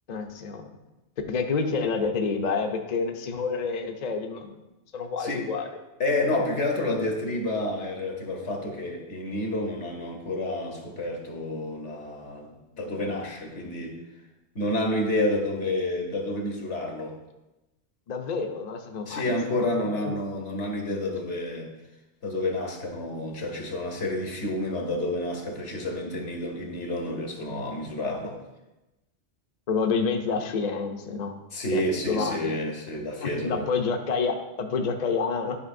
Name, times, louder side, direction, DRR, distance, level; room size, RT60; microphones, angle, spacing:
voice 1, 0.1-0.6 1.3-4.6 4.9-5.7 18.1-20.2 29.7-31.4 31.7-32.6 33.2-35.6, left 5 dB, 45° left, 5 dB, 0.6 m, -28 dB
voice 2, 6.0-14.0 14.5-17.1 19.1-21.7 22.2-28.3 31.5-33.7, left 1 dB, 80° left, 1 dB, 1.5 m, -29 dB
11.0 x 5.0 x 2.6 m, 1.0 s
omnidirectional pair, 1.2 m